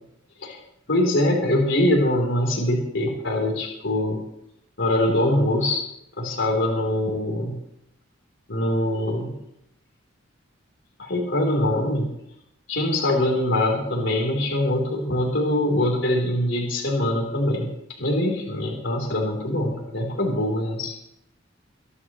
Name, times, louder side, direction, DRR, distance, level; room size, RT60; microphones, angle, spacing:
voice 1, 0.9-4.2 4.8-5.8 6.2-7.6 8.5-9.3 11.0-12.1 12.7-17.7 18.0-20.9, left 1 dB, 65° left, 0 dB, 3.5 m, -23 dB
24.0 x 11.0 x 3.1 m, 0.80 s
head